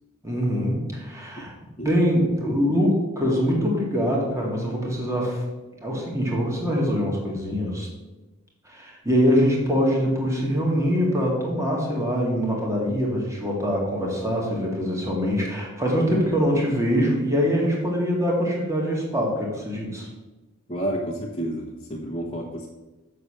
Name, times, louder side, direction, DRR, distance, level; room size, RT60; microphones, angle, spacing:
voice 1, 0.2-1.5 1.8-5.4 5.8-7.9 8.7-20.1, equal, 15° right, -2 dB, 2.0 m, -23 dB
voice 2, 20.7-22.7, equal, 20° left, -2 dB, 1.2 m, -30 dB
6.9 x 6.7 x 6.6 m, 1.1 s
head